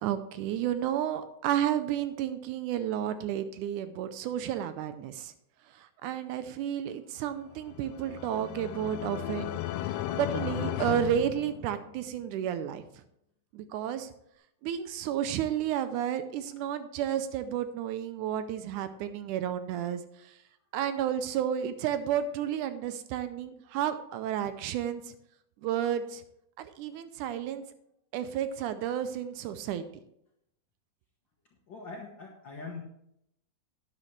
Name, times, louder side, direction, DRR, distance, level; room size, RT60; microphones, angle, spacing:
voice 1, 0.0-5.3 5.8-9.6 9.9-12.8 13.5-14.1 14.6-20.0 20.7-25.1 25.6-26.2 26.6-27.6 28.1-29.8, right 10 dB, 80° right, 11 dB, 2.0 m, -32 dB
sound 1, 7.5-12.1, left 13 dB, 85° left, 2.1 m, -35 dB
voice 2, 31.7-32.8, left 4 dB, 60° left, -1 dB, 1.3 m, -42 dB
11.5 x 9.9 x 3.2 m, 0.76 s
omnidirectional pair, 3.7 m